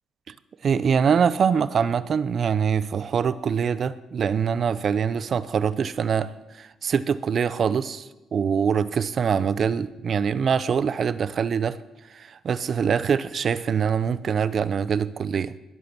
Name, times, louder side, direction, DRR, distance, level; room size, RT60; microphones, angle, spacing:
voice 1, 0.6-11.8 12.1-15.5, right 7 dB, 50° right, 0.6 m, -24 dB
20.5 x 8.5 x 6.1 m
cardioid pair, 90°, 0 cm